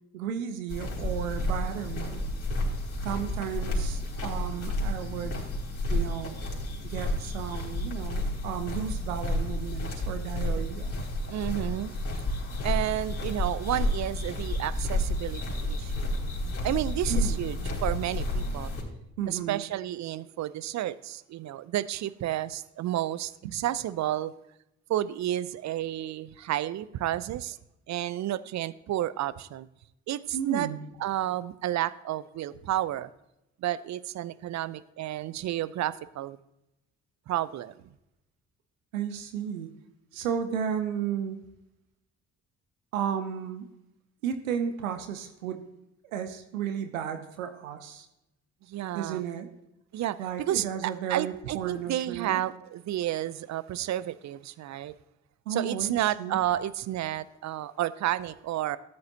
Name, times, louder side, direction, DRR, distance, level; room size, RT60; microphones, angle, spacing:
voice 1, 0.1-2.2 3.0-5.4 5.9-6.4 6.8-10.9 17.1-17.5 19.2-19.6 23.4-23.6 30.3-30.9 38.9-39.8 40.1-41.4 42.9-43.7 44.2-45.6 46.0-48.1 48.9-49.5 50.2-52.4 55.5-56.4, right 8 dB, 80° right, 8 dB, 0.8 m, -33 dB
sound 1, 0.7-18.8, left 1 dB, 35° left, 3.7 m, -31 dB
voice 2, 11.3-11.9 12.6-16.1 16.6-18.7 19.3-24.3 24.9-27.6 27.9-29.7 30.1-30.7 31.0-33.1 33.6-36.4 37.3-37.8 48.6-49.2 49.9-55.0 55.5-58.8, right 13 dB, 45° right, 18 dB, 0.6 m, -31 dB
13.0 x 9.6 x 2.8 m, 0.87 s
figure-of-eight pair, 45°, 39 cm